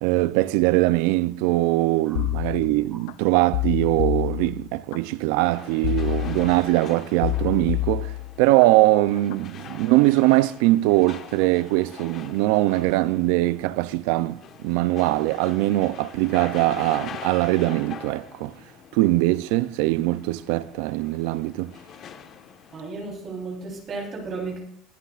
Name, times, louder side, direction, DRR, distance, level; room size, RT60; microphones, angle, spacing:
voice 1, 0.0-8.1 8.4-18.5 18.9-21.7, right 18 dB, 80° right, 0.4 m, -22 dB
sound 1, 2.2-3.1 3.5-5.0 5.8-6.8 7.2-8.7 9.1-9.5, left 19 dB, 85° left, 0.4 m, -28 dB
sound 2, 5.4-22.8, left 7 dB, 40° left, 1.3 m, -43 dB
voice 2, 22.7-24.6, right 3 dB, 35° right, 3.6 m, -34 dB
20.0 x 11.5 x 2.4 m
cardioid pair, 145°, 0 cm